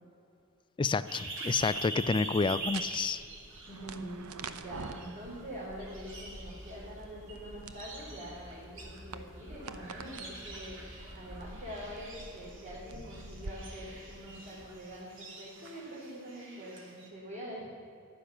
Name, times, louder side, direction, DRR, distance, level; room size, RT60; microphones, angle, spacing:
voice 1, 0.8-3.2, left 4 dB, 20° left, 15 dB, 0.3 m, -29 dB
sound 1, 1.1-4.3 4.7-5.5 5.8-17.1, right 2 dB, 60° right, 3.0 m, -44 dB
sound 2, 1.6-13.5, right 4 dB, 80° right, 0.8 m, -49 dB
voice 2, 1.9-2.6 3.7-4.2 4.6-10.8 11.1-17.7, equal, 40° right, -7 dB, 3.8 m, -45 dB
sound 3, 5.2-14.8, equal, 15° right, 1.9 m, -51 dB
14.5 x 11.0 x 7.1 m, 2.6 s
head